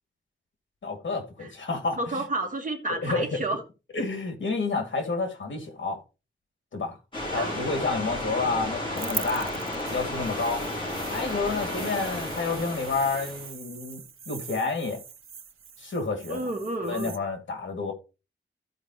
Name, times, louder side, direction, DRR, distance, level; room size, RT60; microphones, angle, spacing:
voice 1, 0.8-2.2 2.9-3.4 3.9-6.0 6.7-7.0 7.3-9.5 9.9-10.7 11.1-14.0 14.3-15.0 15.8-16.5 16.9-17.9, left 3 dB, 70° left, 2.6 m, -29 dB
voice 2, 2.0-3.6 7.3-7.8 16.3-17.1, right 2 dB, 40° right, 1.7 m, -31 dB
sound 1, 7.1-13.5, left 1 dB, 25° left, 4.2 m, -33 dB
sound 2, 9.0-17.2, right 7 dB, 90° right, 0.8 m, -41 dB
14.5 x 5.0 x 3.2 m
wide cardioid pair, 170°, 21 cm